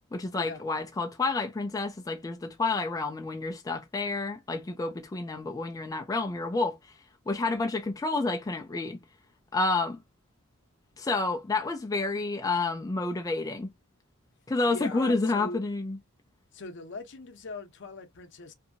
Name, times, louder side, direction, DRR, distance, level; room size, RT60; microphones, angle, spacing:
voice 1, 0.1-7.0 7.3-9.0 9.5-10.0 11.0-13.7 14.5-16.0, left 3 dB, 15° left, 0.3 m, -29 dB
voice 2, 14.7-15.6 16.5-18.5, left 3 dB, 55° left, 0.7 m, -40 dB
2.7 x 2.6 x 2.5 m
head